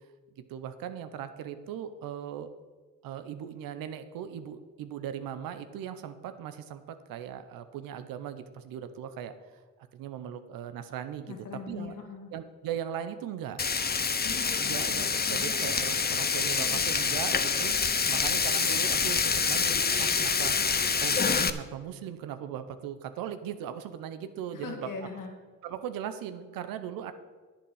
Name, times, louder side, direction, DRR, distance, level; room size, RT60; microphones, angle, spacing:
voice 1, 0.5-2.5 3.0-9.3 9.9-11.3 11.7-11.9 12.3-13.6 14.6-17.7 18.1-20.6 21.0-24.9 25.6-27.1, right 9 dB, 85° right, 11 dB, 0.8 m, -38 dB
voice 2, 11.3-12.3 14.2-15.5 24.5-25.3, left 5 dB, 70° left, 2 dB, 2.3 m, -41 dB
Frying (food), 13.6-21.5, left 5 dB, 30° left, 0.7 m, -27 dB
10.0 x 8.9 x 5.5 m, 1.4 s
supercardioid pair, 45°, 33 cm